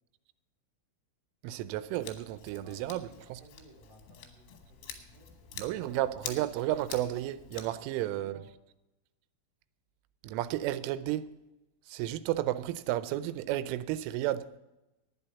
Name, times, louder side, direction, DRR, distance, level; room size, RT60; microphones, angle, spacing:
voice 1, 1.4-3.1 5.6-8.4 10.2-11.3 11.9-14.5, right 14 dB, 90° right, 3.1 m, -32 dB
Scissors, 2.0-7.6, left 8 dB, 80° left, 3.9 m, -47 dB
voice 2, 2.5-6.2 7.5-8.5, right 2 dB, 50° right, 4.0 m, -58 dB
11.0 x 9.8 x 6.9 m
omnidirectional pair, 5.5 m